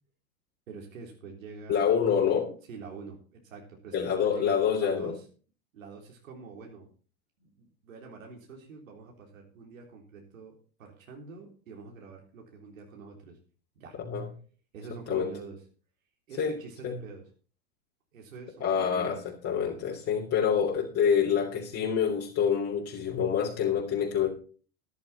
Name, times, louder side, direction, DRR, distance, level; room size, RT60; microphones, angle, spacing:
voice 1, 0.7-2.1 2.7-5.2 5.7-6.9 7.4-13.4 13.8-14.0 14.7-15.6 16.3-17.2 18.1-19.2, right 5 dB, 80° right, 1 dB, 3.7 m, -45 dB
voice 2, 1.7-2.5 3.9-5.1 14.0-14.3 15.1-15.3 16.4-16.5 16.8-17.0 18.6-24.3, left 7 dB, 35° left, -2 dB, 3.3 m, -27 dB
12.5 x 10.5 x 4.3 m, 0.40 s
hypercardioid pair, 105°, 40 cm